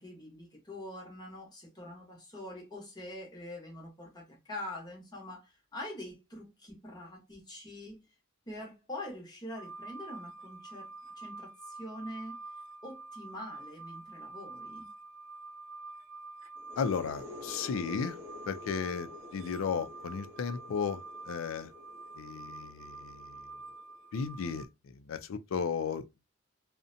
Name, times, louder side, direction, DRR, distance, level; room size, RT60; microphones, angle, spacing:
voice 1, 0.0-8.0 8.5-12.4 12.8-14.9, left 1 dB, 20° left, 0.8 m, -44 dB
sound 1, 9.6-24.7, right 3 dB, 70° right, 0.3 m, -47 dB
sound 2, 16.6-24.1, left 3 dB, 15° right, 0.7 m, -49 dB
voice 2, 16.8-18.2 18.5-21.7 22.2-23.5 24.1-26.0, left 6 dB, 80° left, 0.4 m, -35 dB
2.5 x 2.1 x 2.5 m
head